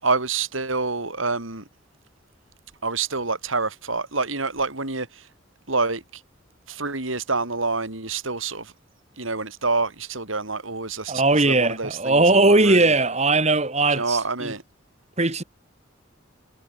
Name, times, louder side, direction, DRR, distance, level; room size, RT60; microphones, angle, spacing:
voice 1, 0.0-1.6 2.8-5.2 5.7-6.0 6.7-8.7 9.2-12.9 13.9-14.6, right 3 dB, 85° right, 5.5 m, -27 dB
voice 2, 11.1-14.5 15.2-15.4, right 2 dB, 35° right, 3.2 m, -19 dB
head